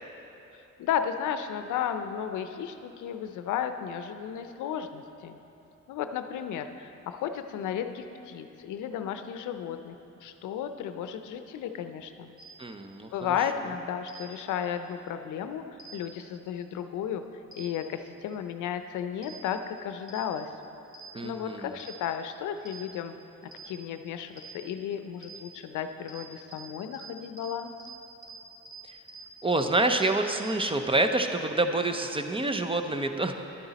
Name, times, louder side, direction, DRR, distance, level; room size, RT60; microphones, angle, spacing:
voice 1, 0.8-5.4 5.9-12.3 13.1-15.6 15.9-17.2 17.5-20.5 21.2-23.2 23.6-27.7, left 8 dB, 80° left, 9 dB, 0.6 m, -34 dB
sound 1, 12.4-12.5 14.1-14.2 15.8-15.9 17.5-17.6 19.2-19.3 20.1-20.2 20.9-21.0 21.8-21.9 22.6-22.7 23.5-23.6 24.4-24.5 25.2-25.3 26.1-26.2 26.5-26.6 26.9-27.0 27.4-27.5 27.8-27.9 28.2-28.3 28.6-28.7 29.1-29.2 29.5-29.6 29.9-30.0 30.4-30.5, left 1 dB, 5° left, 1.9 m, -48 dB
voice 2, 12.6-13.1 21.1-21.7 28.8-29.0 29.4-33.3, right 2 dB, 20° right, 6 dB, 0.6 m, -27 dB
11.0 x 9.5 x 4.1 m, 2.9 s
cardioid pair, 90°, 30 cm